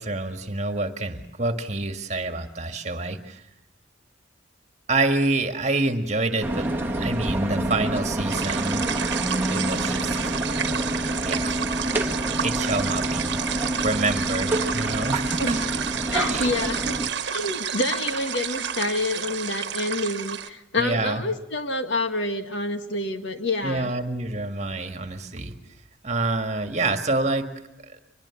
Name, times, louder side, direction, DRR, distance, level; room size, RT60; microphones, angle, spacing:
voice 1, 0.0-3.4 4.9-6.7 7.0-8.9 9.5-10.3 11.2-11.6 12.4-13.4 13.8-15.6 15.9-16.5 20.8-21.2 23.6-25.5 26.0-27.5 27.8-28.0, right 2 dB, 35° right, 7 dB, 1.8 m, -27 dB
sound 1, 6.4-17.1, right 1 dB, 10° right, 1.4 m, -27 dB
sound 2, 8.3-20.5, right 8 dB, 60° right, 1.3 m, -30 dB
voice 2, 16.1-17.0 17.3-23.9, left 2 dB, 65° left, 7 dB, 1.9 m, -27 dB
24.0 x 21.5 x 7.2 m, 0.85 s
head